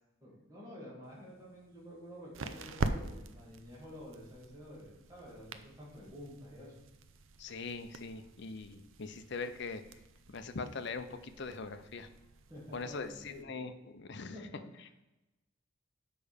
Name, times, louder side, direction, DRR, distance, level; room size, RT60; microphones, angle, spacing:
voice 1, 0.2-6.7 12.5-13.4 14.3-14.6, equal, 15° right, -6 dB, 2.3 m, -49 dB
sound 1, 1.0-13.4, right 3 dB, 65° right, 0.5 m, -44 dB
voice 2, 7.4-9.8 10.3-12.1 12.7-14.5 14.8-14.9, left 4 dB, 55° left, 9 dB, 0.6 m, -42 dB
6.9 x 5.4 x 5.0 m, 1.0 s
head